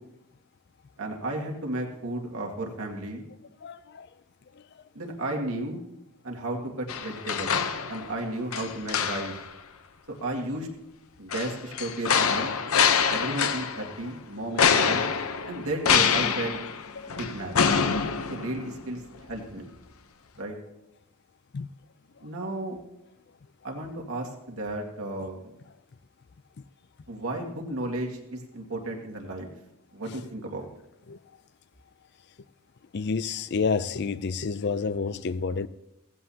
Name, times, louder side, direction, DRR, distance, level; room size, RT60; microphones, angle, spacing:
voice 1, 1.0-3.2 4.9-5.8 6.2-7.5 7.9-9.4 10.2-10.7 11.2-12.5 13.1-15.1 15.4-16.6 17.1-17.6 18.3-19.7 20.4-20.5 22.2-22.8 23.6-25.4 27.1-29.5 29.9-30.7, right 1 dB, 80° right, 2.2 m, -33 dB
voice 2, 3.6-4.1 4.5-4.8 13.3-13.4 13.8-13.9 14.6-14.7 17.0-17.2 21.5-21.7 22.2-22.5 30.1-30.2 31.1-31.2 32.9-35.7, left 5 dB, 50° left, 0.4 m, -30 dB
sound 1, 6.9-8.2 8.5-9.5 11.3-14.0 14.6-18.9 19.3-19.4, left 6 dB, 85° left, 0.9 m, -25 dB
17.5 x 15.0 x 2.9 m
head